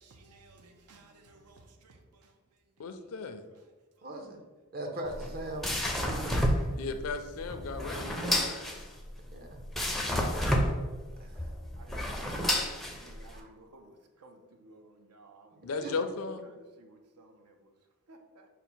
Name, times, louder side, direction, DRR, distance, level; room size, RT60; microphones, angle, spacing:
voice 1, 0.0-1.9 11.8-12.6 12.9-13.9 14.2-15.6 16.8-17.5 18.1-18.4, right 2 dB, 85° right, 0.6 m, -56 dB
voice 2, 2.8-3.4 6.8-8.7 15.6-16.5, left 4 dB, 65° left, 0.4 m, -36 dB
voice 3, 4.0-4.4 4.7-6.4 9.3-9.6 11.2-11.4 11.9-12.2 13.1-13.5 15.8-15.9, right 1 dB, 45° right, 0.7 m, -41 dB
sound 1, 5.0-13.4, equal, ahead, 0.4 m, -31 dB
5.1 x 2.1 x 4.4 m
head